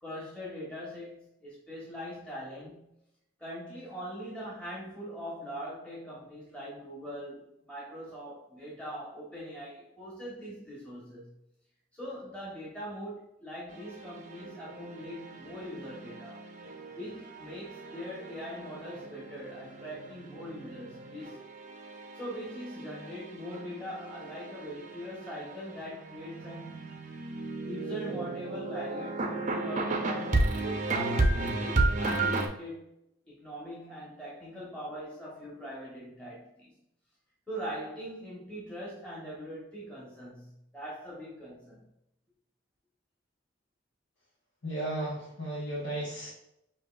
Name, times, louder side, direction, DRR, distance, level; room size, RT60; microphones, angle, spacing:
voice 1, 0.0-2.9 3.4-11.3 11.9-16.4 16.9-21.4 22.1-26.9 27.7-32.9 33.2-36.8 37.5-41.8, equal, 5° left, -7 dB, 1.3 m, -42 dB
sound 1, 13.7-32.5, right 2 dB, 40° right, 0.7 m, -34 dB
voice 2, 44.6-46.3, right 1 dB, 70° left, -6 dB, 1.2 m, -34 dB
6.6 x 2.9 x 2.4 m, 0.80 s
head